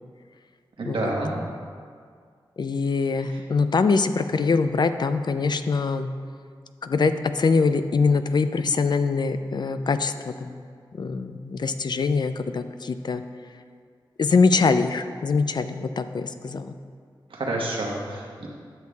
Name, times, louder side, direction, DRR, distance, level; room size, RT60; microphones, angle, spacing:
voice 1, 0.8-1.3 3.3-3.4 17.3-18.5, right 2 dB, 80° right, -2 dB, 1.2 m, -29 dB
voice 2, 2.6-6.1 6.8-10.1 10.4-10.6 11.0-13.2 14.2-16.7, left 4 dB, 55° left, 10 dB, 0.4 m, -23 dB
10.5 x 6.4 x 2.3 m, 2.1 s
cardioid pair, 60°, 9 cm